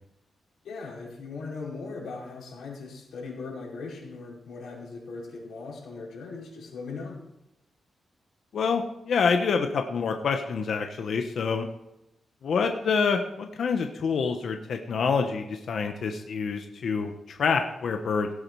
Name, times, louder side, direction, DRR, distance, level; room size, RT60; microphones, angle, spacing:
voice 1, 0.6-7.2, left 4 dB, 90° left, -4 dB, 5.3 m, -39 dB
voice 2, 8.5-11.7 12.4-18.3, left 5 dB, 65° left, 5 dB, 1.1 m, -27 dB
17.0 x 8.7 x 4.8 m, 0.86 s
wide cardioid pair, 140°, 0 cm